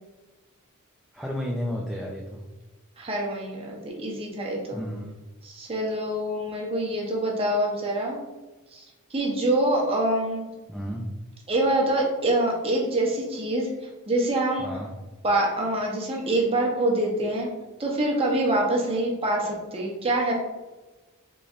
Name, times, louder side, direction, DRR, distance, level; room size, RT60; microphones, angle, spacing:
voice 1, 1.1-2.4 4.7-5.2 10.7-11.1 14.6-14.9, equal, ahead, -2 dB, 0.3 m, -32 dB
voice 2, 3.0-4.8 5.4-8.2 8.7-8.8 9.1-10.5 11.5-14.7 15.2-17.5 17.8-20.3, right 1 dB, 25° right, -2 dB, 0.8 m, -25 dB
3.8 x 3.2 x 2.4 m, 1.2 s
head